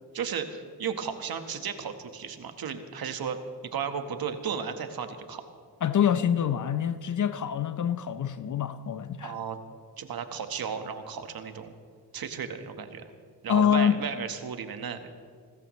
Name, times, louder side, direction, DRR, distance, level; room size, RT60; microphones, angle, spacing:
voice 1, 0.1-3.4 3.7-5.4 9.2-9.6 10.0-11.7 12.1-13.0 13.4-15.1, right 7 dB, 55° right, 1.4 m, -34 dB
voice 2, 5.8-9.4 13.5-14.0, left 8 dB, 45° left, 0.6 m, -25 dB
27.5 x 14.0 x 3.2 m
cardioid pair, 90°, 43 cm